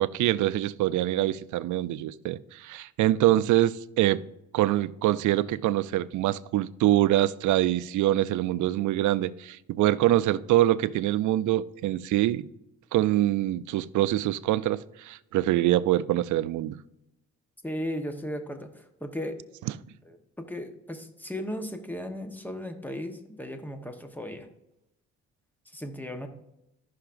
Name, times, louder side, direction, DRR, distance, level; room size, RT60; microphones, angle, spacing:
voice 1, 0.0-4.2 4.5-12.5 12.9-16.7, right 14 dB, 75° right, 0.5 m, -24 dB
voice 2, 17.6-19.4 20.0-24.5 25.7-26.3, equal, 5° left, 1.0 m, -36 dB
14.5 x 5.8 x 2.6 m
cardioid pair, 90°, 30 cm